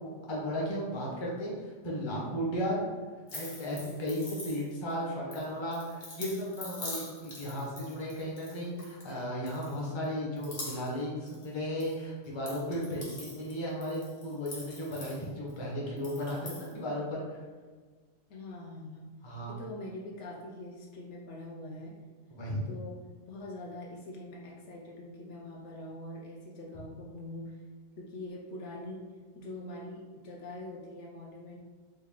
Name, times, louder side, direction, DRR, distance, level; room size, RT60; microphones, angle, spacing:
voice 1, 0.0-1.5 1.8-2.8 3.3-17.4 19.2-19.5 22.3-22.6, equal, 25° left, -4 dB, 0.7 m, -35 dB
sound 1, 3.3-4.9 5.3-9.1 9.5-10.0 10.4-11.9 12.2-15.5 16.0-16.7, left 2 dB, 50° left, 1.1 m, -45 dB
voice 2, 18.3-19.1 19.5-22.0 22.7-23.0 23.3-27.6 28.0-31.6, left 1 dB, 80° left, -2 dB, 1.0 m, -43 dB
3.2 x 2.3 x 3.6 m, 1.4 s
omnidirectional pair, 1.2 m